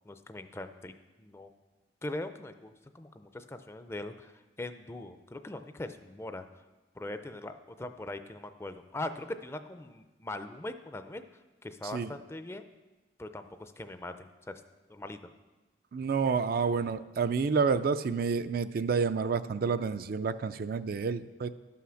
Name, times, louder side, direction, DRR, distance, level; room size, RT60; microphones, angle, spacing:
voice 1, 0.1-0.9 1.2-1.5 2.0-4.3 4.6-6.4 7.0-11.2 11.6-12.7 13.2-14.5 14.9-15.2, left 2 dB, 15° left, 9 dB, 0.5 m, -41 dB
voice 2, 15.9-21.5, right 5 dB, 55° right, 11 dB, 0.4 m, -29 dB
12.0 x 5.8 x 6.3 m, 1.1 s
head